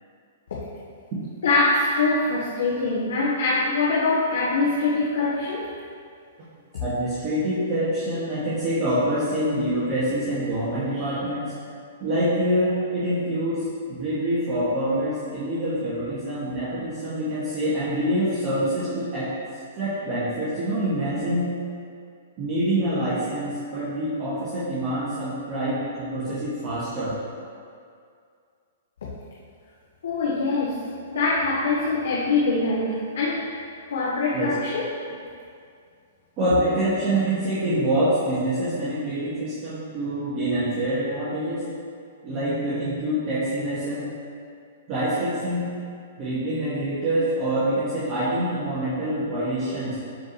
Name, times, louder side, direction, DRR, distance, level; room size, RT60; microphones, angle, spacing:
voice 1, 1.4-5.7 6.7-6.8 30.0-33.5 33.9-34.9, left 3 dB, 70° left, -6 dB, 1.3 m, -23 dB
voice 2, 6.8-11.5 12.0-19.3 19.7-21.6 22.4-27.1 34.3-34.5 36.4-41.7 42.2-44.1 44.9-45.7 46.2-50.0, right 1 dB, 35° right, -11 dB, 2.1 m, -26 dB
13.0 x 5.0 x 3.3 m, 2.3 s
hypercardioid pair, 120°, 0 cm